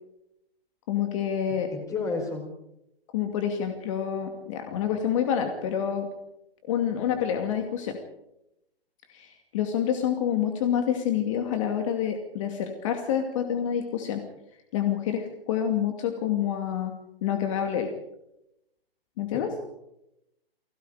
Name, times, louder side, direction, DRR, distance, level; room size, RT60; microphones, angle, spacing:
voice 1, 0.9-1.7 3.1-6.1 6.7-8.0 9.1-14.2 14.7-16.9 17.2-17.9 19.2-19.5, left 9 dB, 30° left, 5 dB, 2.4 m, -27 dB
voice 2, 1.5-2.4 19.3-19.7, left 4 dB, 10° left, 3 dB, 4.8 m, -32 dB
30.0 x 21.0 x 5.0 m, 0.85 s
hypercardioid pair, 160°, 31 cm